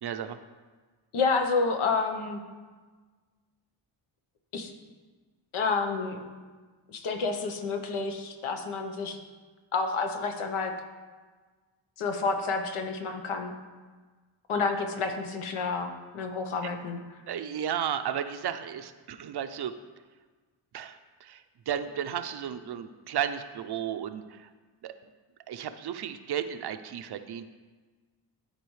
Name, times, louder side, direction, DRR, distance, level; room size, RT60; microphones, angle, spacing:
voice 1, 0.0-0.4 16.6-16.7 17.3-19.7 20.7-24.5 24.8-24.9 25.5-27.5, right 9 dB, 55° right, 10 dB, 0.5 m, -34 dB
voice 2, 1.1-2.4 4.5-4.7 5.5-6.2 6.9-9.2 9.7-10.7 12.0-13.5 14.5-17.0, left 4 dB, 75° left, 5 dB, 1.0 m, -29 dB
12.5 x 4.1 x 3.2 m, 1.4 s
cardioid pair, 95°, 50 cm